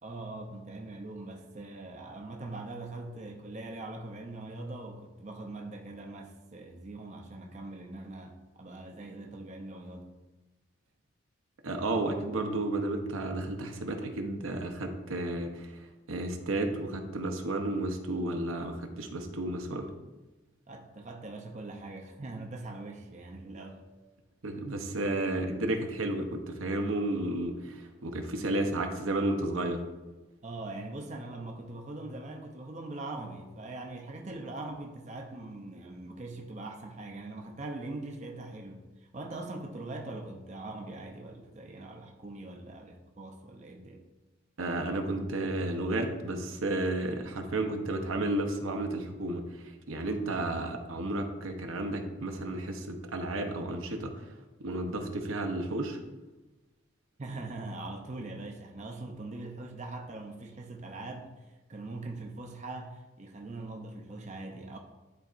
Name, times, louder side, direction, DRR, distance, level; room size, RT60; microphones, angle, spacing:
voice 1, 0.0-10.1 20.7-23.8 24.5-24.6 30.4-44.0 57.2-61.3 61.7-64.8, right 2 dB, 35° right, 0.5 m, -42 dB
voice 2, 11.6-15.8 16.1-19.9 24.4-29.8 44.6-54.2 54.6-56.0, right 2 dB, 85° right, 0.8 m, -32 dB
10.5 x 4.0 x 2.5 m
head